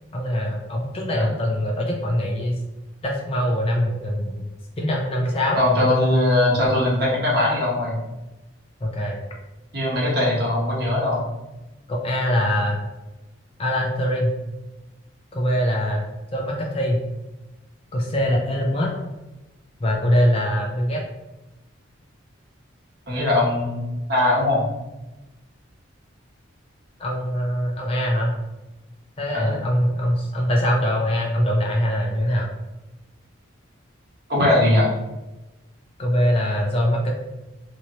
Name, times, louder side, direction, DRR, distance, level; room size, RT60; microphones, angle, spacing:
voice 1, 0.1-2.6 3.0-4.5 4.8-5.6 8.8-9.2 11.9-12.8 13.6-14.3 15.3-16.1 16.3-17.0 17.9-18.9 19.8-21.0 27.0-28.3 29.2-32.5 36.0-37.1, equal, 30° left, -1 dB, 0.4 m, -23 dB
voice 2, 5.5-8.0 9.7-11.2 23.1-24.6 29.3-29.6 34.3-34.9, left 1 dB, 50° right, -4 dB, 1.0 m, -20 dB
3.0 x 2.8 x 2.8 m, 1.0 s
head